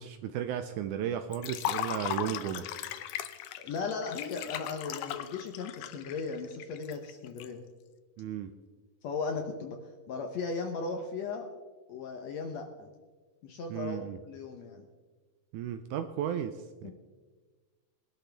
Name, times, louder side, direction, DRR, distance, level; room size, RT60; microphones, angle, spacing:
voice 1, 0.0-2.7 8.2-8.5 13.7-14.2 15.5-16.9, right 9 dB, 80° right, 9 dB, 1.8 m, -34 dB
Liquid, 1.3-7.5, left 12 dB, 90° left, 2.5 m, -37 dB
voice 2, 3.6-7.6 9.0-9.8 10.1-11.5 11.9-12.9 13.4-14.9 16.8-16.9, left 4 dB, 70° left, 4 dB, 1.7 m, -37 dB
22.5 x 11.5 x 3.4 m, 1.4 s
omnidirectional pair, 4.0 m